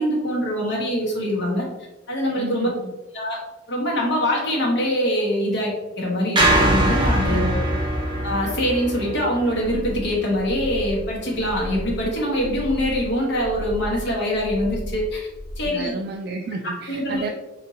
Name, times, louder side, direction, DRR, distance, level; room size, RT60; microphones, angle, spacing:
voice 1, 0.0-1.6 2.1-2.7 3.1-3.4 3.7-7.5 8.2-15.3 15.6-15.9 16.9-17.2, equal, 60° left, -2 dB, 1.3 m, -24 dB
voice 2, 2.4-2.9 7.3-7.8 15.6-17.3, right 3 dB, 55° right, 2 dB, 0.3 m, -32 dB
sound 1, 6.3-10.7, right 1 dB, 25° right, 0.9 m, -22 dB
sound 2, 9.6-15.7, equal, 80° left, 0.8 m, -34 dB
4.0 x 3.5 x 2.7 m, 1.1 s
head